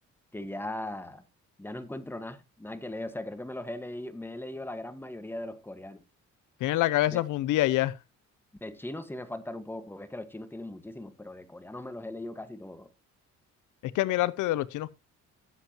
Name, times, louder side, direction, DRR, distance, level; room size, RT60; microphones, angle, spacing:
voice 1, 0.3-1.2 1.6-6.0 7.1-7.2 8.6-12.9, left 1 dB, 5° left, 1.4 m, -39 dB
voice 2, 6.6-8.0 13.8-14.9, left 15 dB, 85° left, 0.6 m, -26 dB
15.5 x 7.3 x 2.9 m
cardioid pair, 90°, 30 cm